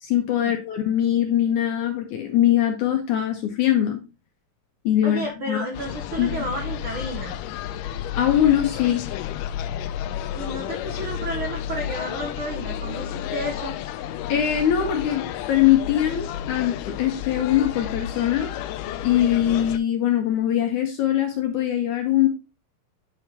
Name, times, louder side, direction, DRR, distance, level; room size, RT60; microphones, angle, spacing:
voice 1, 0.0-4.0 4.9-5.2 5.5-5.7 6.2-6.4 8.1-9.1 14.3-18.5 19.0-22.3, left 11 dB, 75° left, 1.9 m, -22 dB
voice 2, 5.0-7.4 10.3-13.8, right 1 dB, 75° right, 1.2 m, -32 dB
sound 1, 5.7-19.8, left 10 dB, 90° left, 1.9 m, -31 dB
8.9 x 4.4 x 3.4 m
omnidirectional pair, 4.3 m